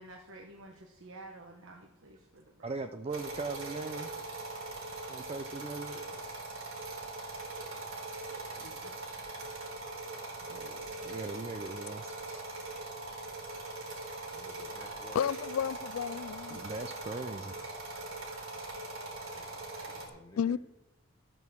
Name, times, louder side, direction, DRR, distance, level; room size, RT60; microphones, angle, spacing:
voice 1, 0.0-2.8 8.6-9.0 10.4-11.4, right 2 dB, 65° right, 1.2 m, -51 dB
voice 2, 2.6-4.1 5.1-6.2 11.0-12.4 16.5-17.7 19.0-19.1, right 3 dB, 30° right, 0.5 m, -39 dB
sound 1, 3.1-20.1, right 2 dB, 80° right, 3.5 m, -41 dB
voice 3, 13.9-15.2 19.3-20.6, left 1 dB, 20° left, 1.1 m, -55 dB
voice 4, 15.1-16.6 20.4-20.6, left 8 dB, 70° left, 0.3 m, -32 dB
13.0 x 6.2 x 7.0 m
head